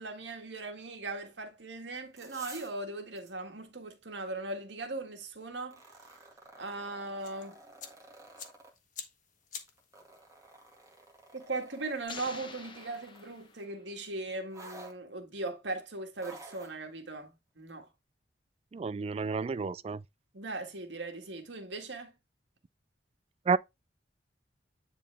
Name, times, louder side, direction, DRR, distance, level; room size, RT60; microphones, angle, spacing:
voice 1, 0.0-5.8 6.6-7.6 11.3-17.9 20.3-22.1, right 2 dB, 75° right, 1.8 m, -39 dB
sound 1, 2.0-2.8 3.2-3.3 5.6-8.7 9.7-13.3 14.5-15.0 16.2-16.8 17.7-17.8, right 2 dB, 20° right, 2.0 m, -52 dB
sound 2, 7.2-13.6, left 7 dB, 45° left, 1.4 m, -52 dB
sound 3, 12.1-14.0, left 4 dB, 25° left, 1.0 m, -47 dB
voice 2, 18.7-20.0 23.5-23.6, right 4 dB, 35° right, 0.3 m, -30 dB
10.0 x 4.1 x 3.4 m
head